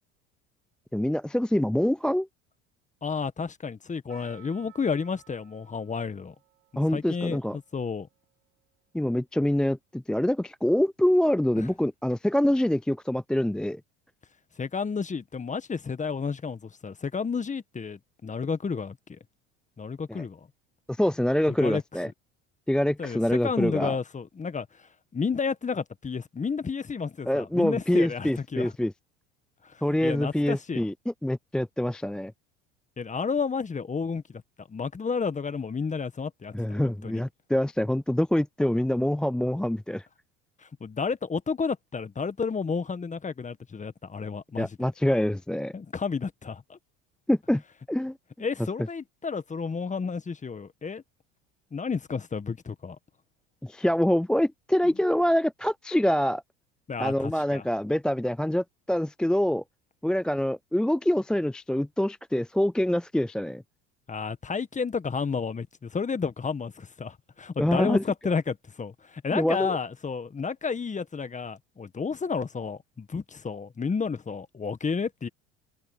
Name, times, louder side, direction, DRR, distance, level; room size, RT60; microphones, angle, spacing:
voice 1, 0.9-2.3 6.8-7.6 8.9-13.8 20.1-20.2 20.9-22.1 22.7-24.0 27.3-28.9 29.8-30.9 31.2-32.3 36.5-40.1 44.6-45.7 47.3-47.6 47.9-48.2 53.6-56.4 57.0-59.6 60.0-63.6 67.6-68.0 69.3-69.8, left 1 dB, ahead, 0.4 m, -25 dB
voice 2, 3.0-6.3 6.9-8.1 11.6-11.7 14.6-19.2 19.8-20.5 21.5-21.8 23.0-28.7 29.6-30.8 33.0-34.4 34.7-37.2 40.6-44.8 45.7-46.8 48.4-51.0 51.7-53.0 56.9-57.6 64.1-75.3, left 5 dB, 20° left, 1.7 m, -31 dB
Percussion, 4.1-9.0, right 18 dB, 85° right, 5.0 m, -59 dB
hypercardioid pair, 80°, 34 cm